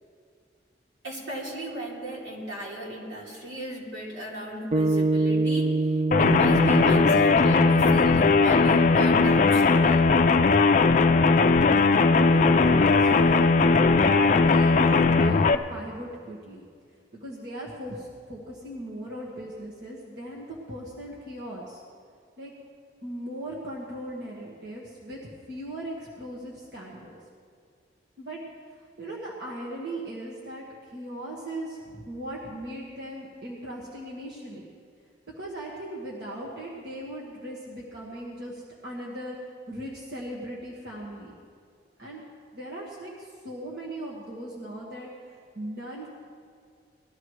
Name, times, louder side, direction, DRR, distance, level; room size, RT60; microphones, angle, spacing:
voice 1, 1.0-5.8 6.2-10.1, right 1 dB, 90° right, -5 dB, 3.2 m, -35 dB
sound 1, 4.7-9.1, right 2 dB, 35° right, 0.4 m, -27 dB
sound 2, 6.1-15.5, left 4 dB, 45° left, 0.4 m, -19 dB
voice 2, 12.2-16.7 17.1-21.8 22.4-22.5 23.0-25.2 25.5-27.1 28.2-28.4 29.0-30.6 30.9-34.6 35.4-41.4 42.0-42.2 42.5-46.1, right 1 dB, 65° right, -5 dB, 1.6 m, -38 dB
19.5 x 13.0 x 3.2 m, 2.1 s
head